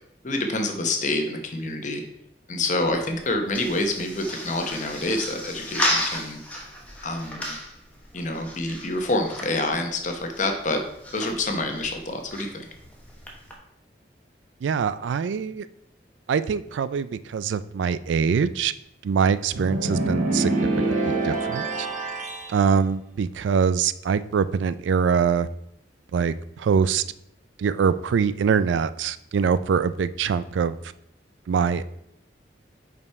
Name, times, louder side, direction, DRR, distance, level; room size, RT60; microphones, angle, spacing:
voice 1, 0.2-2.0 2.5-6.4 7.0-7.6 8.1-10.8 11.1-12.7, left 2 dB, 45° left, 1.0 m, -27 dB
sound 1, 2.6-13.5, equal, 10° left, 1.1 m, -34 dB
voice 2, 14.6-15.7 16.3-18.7 19.0-20.7 21.0-21.9 22.5-25.5 26.1-27.0 27.6-30.8 31.5-31.8, right 6 dB, 85° right, 0.3 m, -23 dB
sound 2, 19.5-22.5, right 2 dB, 45° right, 1.2 m, -25 dB
5.4 x 5.1 x 4.6 m
head